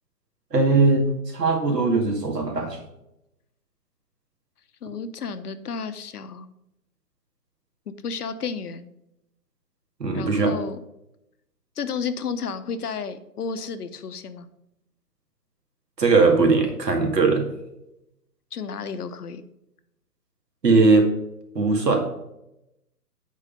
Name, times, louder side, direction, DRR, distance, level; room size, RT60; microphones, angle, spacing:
voice 1, 0.5-1.1 1.3-2.8 10.0-10.5 16.0-17.5 20.6-21.1 21.5-22.2, right 3 dB, 85° right, 3 dB, 2.2 m, -19 dB
voice 2, 4.8-6.5 8.0-8.9 10.1-10.8 11.8-14.5 18.5-19.4, left 5 dB, 70° left, 11 dB, 0.9 m, -32 dB
8.5 x 4.9 x 5.1 m, 0.85 s
hypercardioid pair, 145°, 48 cm